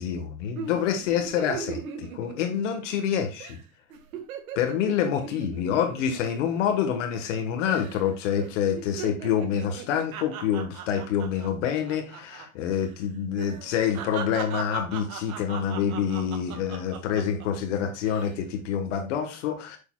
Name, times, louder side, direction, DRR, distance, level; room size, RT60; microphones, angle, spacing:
voice 1, 0.0-3.6 4.5-19.8, left 8 dB, 55° left, 6 dB, 1.4 m, -27 dB
sound 1, 0.6-3.1 3.4-3.6 3.9-7.4 7.7-8.1 8.4-12.5 12.7-12.9 13.4-17.5 17.9-18.4, right 7 dB, 70° right, 1.9 m, -39 dB
6.9 x 6.7 x 2.3 m, 0.32 s
supercardioid pair, 150°, 43 cm